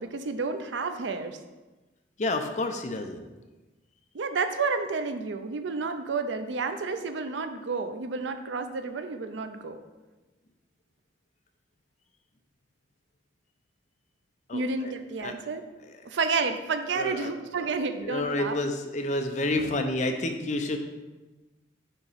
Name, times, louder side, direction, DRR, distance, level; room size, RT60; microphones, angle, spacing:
voice 1, 0.0-1.4 4.1-9.8 14.5-15.6 16.0-18.6, right 4 dB, 85° right, 8 dB, 0.5 m, -30 dB
voice 2, 2.2-3.3 14.5-14.9 15.2-15.4 15.8-16.1 16.9-17.3 17.6-17.7 18.0-20.8, left 2 dB, 40° left, 5 dB, 0.6 m, -30 dB
6.7 x 3.0 x 5.5 m, 1.1 s
head